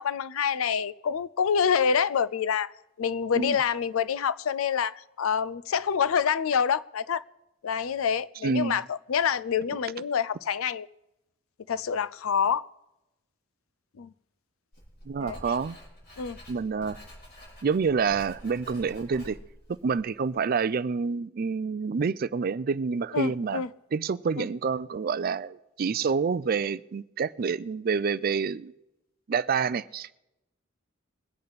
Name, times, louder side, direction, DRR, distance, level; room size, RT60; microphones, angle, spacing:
voice 1, 0.0-2.7 3.0-7.2 7.6-10.9 11.7-12.7 14.0-14.1 15.2-15.4 16.2-16.4 23.1-23.7 24.4-24.5, left 7 dB, 90° left, 0.4 m, -27 dB
voice 2, 8.4-8.8 15.1-15.8 16.5-17.0 17.6-19.4 19.7-23.6 23.9-28.7 29.3-30.1, right 5 dB, 45° right, 0.4 m, -28 dB
Writing, 14.7-20.4, equal, 45° left, 4.1 m, -48 dB
22.0 x 8.6 x 4.1 m
head